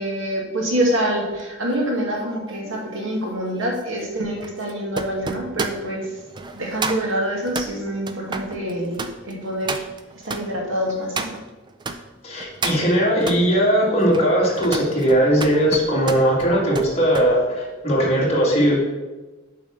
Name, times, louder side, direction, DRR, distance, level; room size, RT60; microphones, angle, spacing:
voice 1, 0.0-6.2 6.5-9.8 10.2-11.4, right 1 dB, 90° right, -1 dB, 2.0 m, -26 dB
sound 1, 1.3-12.0 12.4-13.4 13.9-17.3 17.7-18.0, right 3 dB, 25° right, 0.5 m, -32 dB
voice 2, 12.2-18.8, equal, 35° left, -4 dB, 2.2 m, -19 dB
7.4 x 4.8 x 5.8 m, 1.2 s
head